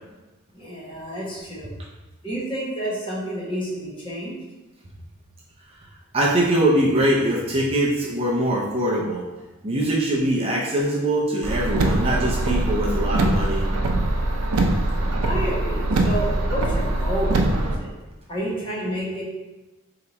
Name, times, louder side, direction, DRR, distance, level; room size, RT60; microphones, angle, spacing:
voice 1, 0.5-1.7 2.2-4.4 15.3-17.9 18.3-19.2, right 1 dB, 25° left, -5 dB, 0.9 m, -29 dB
voice 2, 6.1-9.2 9.6-13.6, right 1 dB, 25° right, -4 dB, 0.5 m, -22 dB
Car, 11.4-17.8, right 2 dB, 85° right, 0.5 m, -22 dB
3.3 x 2.9 x 4.0 m, 1.1 s
head